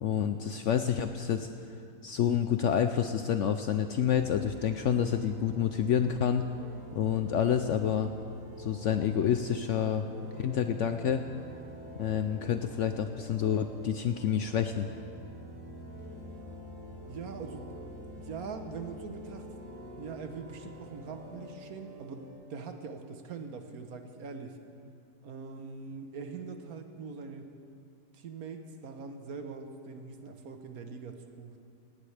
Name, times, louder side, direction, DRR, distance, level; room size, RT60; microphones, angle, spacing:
voice 1, 0.0-1.5 2.0-6.5 7.0-8.1 8.6-10.0 10.4-11.2 12.0-14.9, left 8 dB, 70° left, 8 dB, 0.7 m, -28 dB
sound 1, 3.8-22.3, left 1 dB, 85° right, 3.9 m, -46 dB
voice 2, 17.1-17.7 18.1-19.5 20.0-24.6 25.2-27.5 28.1-31.6, right 5 dB, 70° right, 6 dB, 1.4 m, -42 dB
17.5 x 17.0 x 3.3 m, 2.4 s
omnidirectional pair, 1.7 m